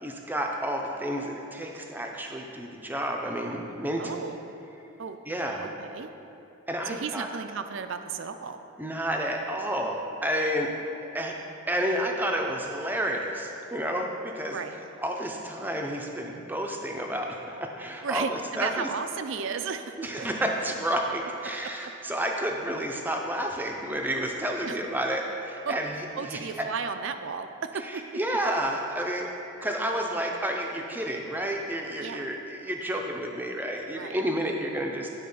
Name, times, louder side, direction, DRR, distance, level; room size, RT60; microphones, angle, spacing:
voice 1, 0.0-4.2 5.3-5.7 6.7-7.3 8.8-10.7 11.1-11.3 11.7-14.5 15.0-18.9 20.0-26.4 27.9-29.3 29.6-35.1, equal, 10° right, 1 dB, 0.5 m, -30 dB
voice 2, 4.0-4.4 5.0-5.2 5.6-6.1 6.8-8.6 14.5-14.8 18.0-20.3 24.6-24.8 25.7-25.8 26.2-28.1 32.0-32.2 34.0-34.2, right 6 dB, 60° right, 8 dB, 0.4 m, -34 dB
11.0 x 4.1 x 5.4 m, 3.0 s
head